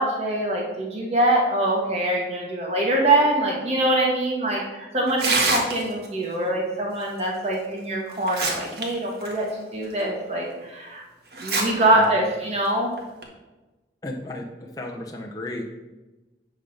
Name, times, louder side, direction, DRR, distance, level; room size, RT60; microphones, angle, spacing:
voice 1, 0.0-11.0 11.4-12.9, right 1 dB, 35° right, -2 dB, 1.9 m, -23 dB
Tearing, 5.1-6.1 7.5-7.6 8.1-8.8 9.2-9.3 10.0-10.1 11.3-11.6 12.0-12.1 13.0-13.2, right 3 dB, 60° right, 1.6 m, -25 dB
voice 2, 14.0-15.6, left 1 dB, 20° left, 0 dB, 0.8 m, -33 dB
9.9 x 4.0 x 5.9 m, 1.1 s
head